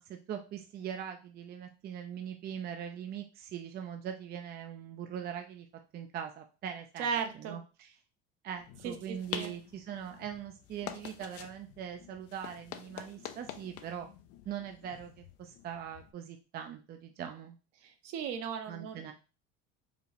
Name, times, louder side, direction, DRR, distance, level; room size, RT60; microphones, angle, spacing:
voice 1, 0.0-5.7 5.9-7.1 7.3-8.0 8.4-14.1 14.5-17.5 18.7-19.1, right 9 dB, 35° right, 5 dB, 0.4 m, -41 dB
voice 2, 7.0-7.6 8.8-9.5 17.8-19.1, right 7 dB, 60° right, 6 dB, 0.9 m, -36 dB
sound 1, 8.6-16.1, left 10 dB, 55° left, 0.5 m, -46 dB
4.8 x 2.4 x 3.3 m, 0.33 s
supercardioid pair, 110°, 29 cm